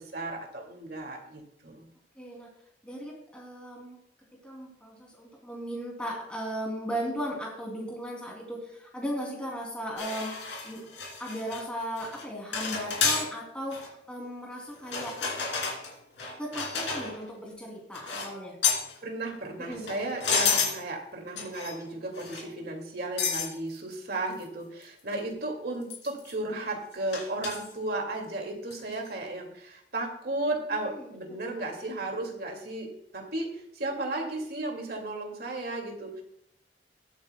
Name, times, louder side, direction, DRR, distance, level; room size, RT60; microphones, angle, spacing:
voice 1, 0.0-1.9 19.0-32.9 33.1-36.2, right 2 dB, 60° right, 1 dB, 2.3 m, -34 dB
voice 2, 2.2-2.5 2.8-4.0 4.4-10.3 10.6-10.8 11.2-13.8 14.1-15.2 16.4-18.5 19.6-19.9 25.1-25.2 30.7-31.5, equal, 5° left, -2 dB, 2.9 m, -36 dB
sound 1, 10.0-11.6 12.0-12.2 12.5-13.3 13.7-13.9 14.8-17.3 17.9-18.3 18.6-18.9 19.7-20.8 21.4-21.8 22.2-22.5 23.2-23.5 23.9-24.0 24.4-24.5 24.8-24.9 25.9-26.3 27.1-27.7 28.7-28.9, left 5 dB, 80° left, 2.8 m, -30 dB
20.0 x 8.9 x 2.3 m, 0.78 s
head